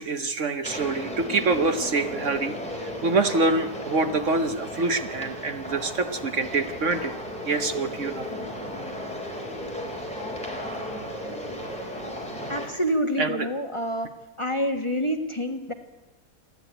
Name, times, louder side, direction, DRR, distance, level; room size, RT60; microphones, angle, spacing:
voice 1, 0.0-7.1 7.5-8.3 13.2-13.5, right 3 dB, 55° right, 9 dB, 1.3 m, -26 dB
sound 1, 0.6-12.7, left 1 dB, 5° left, 3.9 m, -35 dB
voice 2, 12.5-14.1 14.4-15.7, equal, 20° left, 5 dB, 1.4 m, -27 dB
27.5 x 11.0 x 9.1 m, 1.0 s
omnidirectional pair, 1.6 m